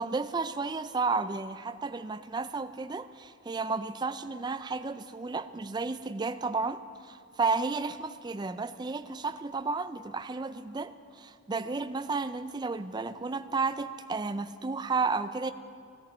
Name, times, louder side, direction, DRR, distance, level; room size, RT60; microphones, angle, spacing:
voice 1, 0.0-15.5, right 4 dB, 20° right, 11 dB, 0.4 m, -32 dB
19.5 x 14.0 x 4.3 m, 2.4 s
head